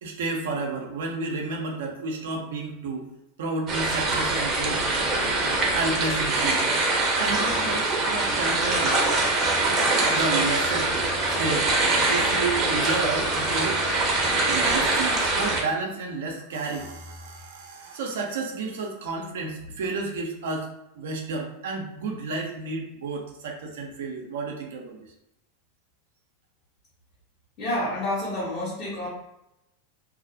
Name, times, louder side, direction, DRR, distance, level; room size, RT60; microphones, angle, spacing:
voice 1, 0.0-3.0 3.4-4.9 5.7-6.8 7.1-9.0 10.0-10.9 11.3-11.7 12.0-13.8 14.4-20.7 20.9-25.1, right 3 dB, 75° right, 2 dB, 0.5 m, -31 dB
sound 1, 3.7-15.6, right 2 dB, 35° right, 0.7 m, -23 dB
voice 2, 27.6-29.1, left 1 dB, 35° left, -9 dB, 1.0 m, -29 dB
2.4 x 2.0 x 2.7 m, 0.87 s
hypercardioid pair, 100°, 0 cm